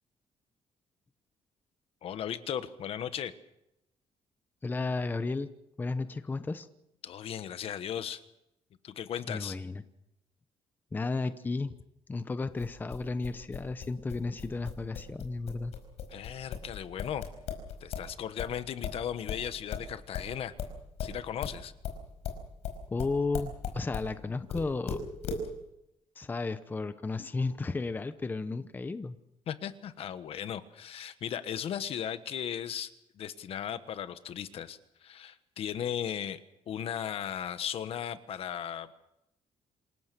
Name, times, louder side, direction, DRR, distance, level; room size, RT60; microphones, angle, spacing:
voice 1, 2.0-3.3 7.0-8.2 8.8-9.6 16.1-17.2 17.8-20.5 21.0-21.7 29.5-32.9 33.2-36.4 36.7-38.9, left 9 dB, 60° left, 12 dB, 1.3 m, -36 dB
voice 2, 4.6-5.5 5.8-6.7 9.3-9.8 10.9-11.7 12.1-15.7 22.9-25.1 26.2-29.2, left 3 dB, 15° left, 11 dB, 0.8 m, -33 dB
sound 1, 12.6-18.1 18.4-24.1 24.5-25.5, left 6 dB, 75° left, 5.0 m, -37 dB
27.5 x 17.0 x 6.9 m, 0.84 s
cardioid pair, 160°, 11 cm